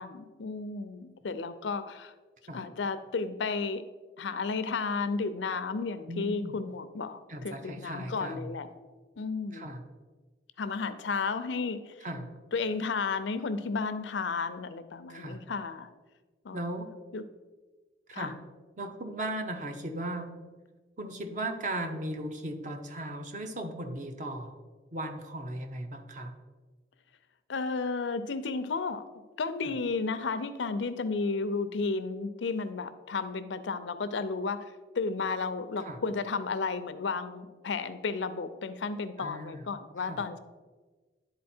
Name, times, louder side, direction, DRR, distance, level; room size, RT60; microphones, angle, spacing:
voice 1, 0.0-2.1 2.5-3.8 4.2-7.2 7.4-8.7 9.2-9.7 10.6-12.0 12.5-15.9 16.4-16.6 17.1-17.2 18.1-18.3 27.5-29.0 29.4-40.4, left 4 dB, 90° left, 12 dB, 0.5 m, -33 dB
voice 2, 6.1-6.6 7.3-8.5 9.5-9.8 12.0-12.3 15.1-15.4 16.5-16.9 18.1-18.3 18.8-20.4 21.0-24.6 24.9-26.3 35.8-36.0 39.2-39.6 40.0-40.2, right 1 dB, 45° right, 6 dB, 0.7 m, -37 dB
10.5 x 4.1 x 4.3 m, 1.3 s
head